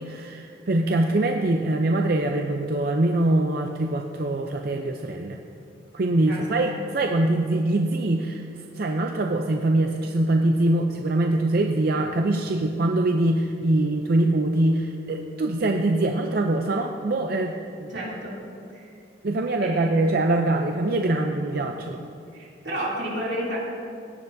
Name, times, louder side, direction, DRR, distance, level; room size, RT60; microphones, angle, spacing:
voice 1, 0.0-5.4 5.9-8.5 8.8-17.9 19.2-22.0, right 2 dB, 55° right, 3 dB, 0.5 m, -23 dB
voice 2, 17.9-18.4 18.7-18.9 19.6-19.9 22.3-23.6, right 1 dB, 85° right, -5 dB, 2.8 m, -31 dB
17.0 x 9.5 x 2.6 m, 2.4 s
head